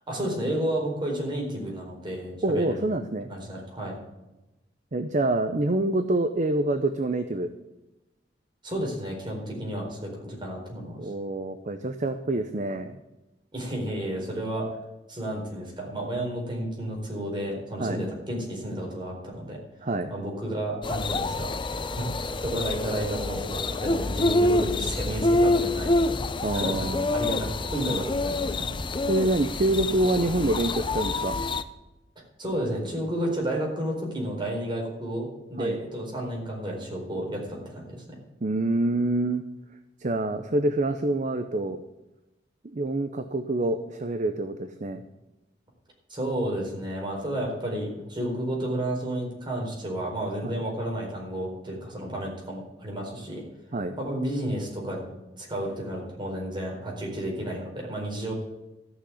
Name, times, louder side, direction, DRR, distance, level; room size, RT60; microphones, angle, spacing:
voice 1, 0.1-2.8 3.3-4.0 8.6-11.1 13.5-14.7 15.1-19.6 20.1-21.5 21.9-22.1 22.4-26.2 26.5-26.9 27.1-28.7 32.4-38.2 46.1-53.4 54.0-58.3, right 1 dB, 25° right, -1 dB, 4.2 m, -31 dB
voice 2, 2.4-3.3 4.9-7.5 11.0-13.0 17.8-18.0 19.8-20.1 26.4-27.1 29.1-31.4 35.6-35.8 38.4-39.4 40.0-41.8 42.7-45.0 50.4-50.5 53.7-54.0, right 2 dB, 45° right, 9 dB, 0.7 m, -26 dB
sound 1, 20.8-31.6, left 2 dB, 25° left, 0.6 m, -27 dB
14.0 x 6.2 x 8.3 m, 0.99 s
head